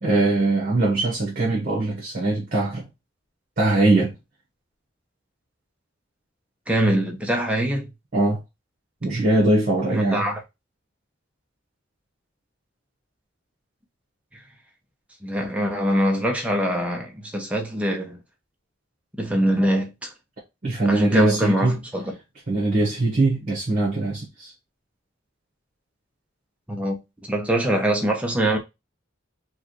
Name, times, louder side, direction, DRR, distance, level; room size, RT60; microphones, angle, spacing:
voice 1, 0.0-2.9 3.6-4.1 8.1-8.4 9.0-10.3 20.6-21.8 22.5-24.5, right 2 dB, 45° right, 1.3 m, -21 dB
voice 2, 6.7-7.9 9.9-10.4 15.2-18.2 19.2-20.1 20.8-22.2 26.7-28.6, right 1 dB, 5° right, 0.8 m, -23 dB
4.7 x 2.4 x 3.1 m
head